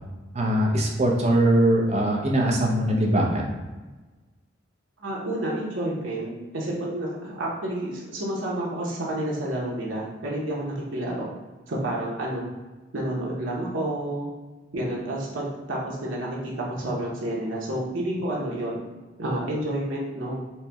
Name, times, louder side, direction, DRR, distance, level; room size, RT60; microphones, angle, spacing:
voice 1, 0.3-3.5, right 1 dB, 35° right, -1 dB, 0.6 m, -21 dB
voice 2, 5.0-11.3 11.7-12.5 12.9-14.3 14.7-18.8 19.2-20.4, right 1 dB, 90° right, -4 dB, 0.9 m, -29 dB
4.3 x 2.1 x 3.4 m, 1.2 s
head